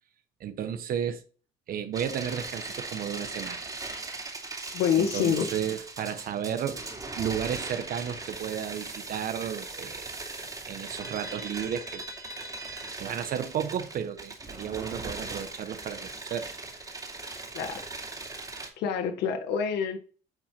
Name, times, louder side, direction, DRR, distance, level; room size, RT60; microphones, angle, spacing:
voice 1, 0.4-1.2 1.7-3.7 5.0-6.9 7.2-10.1 10.7-12.0 13.0-16.5, right 9 dB, 60° right, 0.9 m, -33 dB
sound 1, 1.9-18.7, right 3 dB, 20° right, 2.7 m, -39 dB
voice 2, 4.7-5.5 17.5-17.9 18.8-20.0, left 7 dB, 80° left, 1.5 m, -27 dB
9.7 x 4.8 x 4.4 m
cardioid pair, 110°, 17 cm